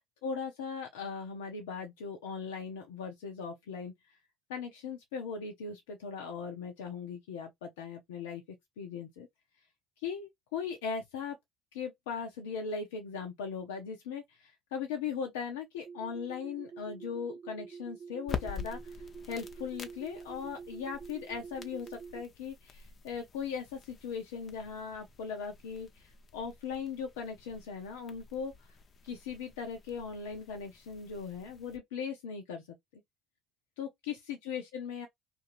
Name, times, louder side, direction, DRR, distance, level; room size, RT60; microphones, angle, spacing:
voice 1, 0.2-3.9 4.5-8.4 8.8-9.3 10.0-11.4 11.7-19.0 19.2-28.5 29.0-32.6 32.9-33.0 33.8-35.1, left 6 dB, 85° left, 0.6 m, -39 dB
sound 1, 15.8-22.2, right 6 dB, 45° right, 0.4 m, -47 dB
sound 2, 18.2-31.8, left 6 dB, 45° left, 0.7 m, -47 dB
2.6 x 2.6 x 3.0 m
hypercardioid pair, 65°, 0 cm